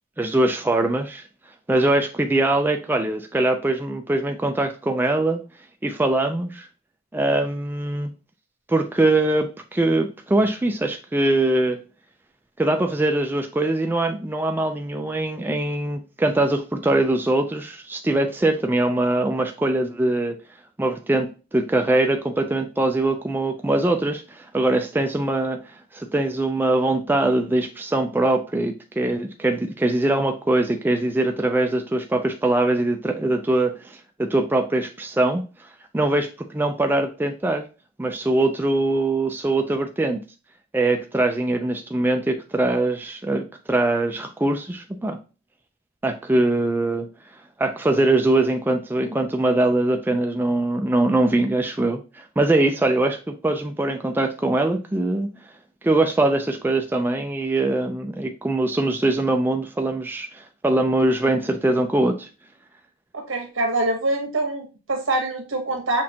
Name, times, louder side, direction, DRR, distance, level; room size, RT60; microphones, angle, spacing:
voice 1, 0.2-1.2 1.7-5.4 5.8-6.7 7.1-8.1 8.7-11.8 12.6-20.4 20.8-35.7 35.9-37.7 38.0-40.2 40.7-45.2 46.0-47.1 47.6-55.3 55.8-62.3, right 2 dB, 10° right, 4 dB, 0.3 m, -22 dB
voice 2, 63.1-66.0, right 2 dB, 80° right, 2 dB, 1.2 m, -25 dB
6.0 x 2.5 x 2.8 m, 0.32 s
head